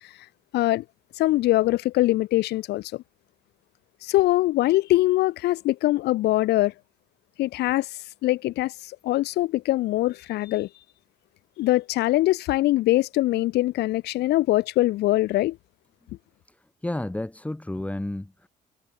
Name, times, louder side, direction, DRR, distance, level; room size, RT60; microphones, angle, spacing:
voice 1, 0.5-0.8 1.2-3.0 4.0-6.7 7.4-10.7 11.6-15.6, left 17 dB, 80° left, 2.2 m, -23 dB
voice 2, 16.8-18.5, left 1 dB, 10° left, 7.4 m, -31 dB
cardioid pair, 110°, 17 cm